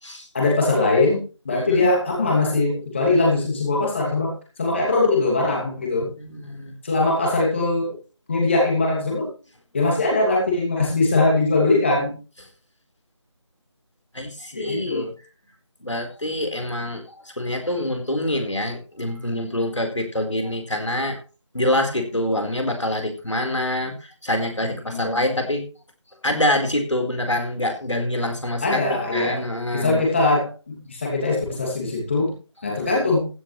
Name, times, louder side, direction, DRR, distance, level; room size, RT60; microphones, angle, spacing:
voice 1, 0.3-4.3 4.6-6.1 6.8-8.0 8.3-9.3 9.7-12.2 14.5-15.1 24.9-25.3 28.6-32.3 32.6-33.3, left 2 dB, 25° left, -1 dB, 2.6 m, -21 dB
voice 2, 1.5-1.8 6.0-6.7 14.1-15.1 15.8-21.2 21.5-25.6 26.2-30.0, left 1 dB, 75° left, 4 dB, 4.5 m, -26 dB
15.5 x 11.0 x 3.3 m, 0.34 s
figure-of-eight pair, 165°, 15 cm